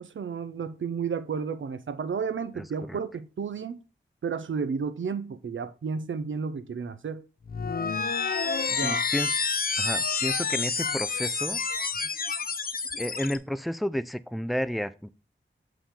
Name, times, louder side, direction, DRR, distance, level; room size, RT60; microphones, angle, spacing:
voice 1, 0.0-3.8 4.2-7.3 8.7-9.0, right 6 dB, 75° right, 0.6 m, -32 dB
voice 2, 2.6-3.0 8.5-9.3 9.8-11.6 13.0-15.1, equal, ahead, 0.4 m, -32 dB
sound 1, 7.5-13.4, left 5 dB, 50° left, 0.6 m, -29 dB
6.9 x 4.8 x 3.7 m
wide cardioid pair, 75°, 20 cm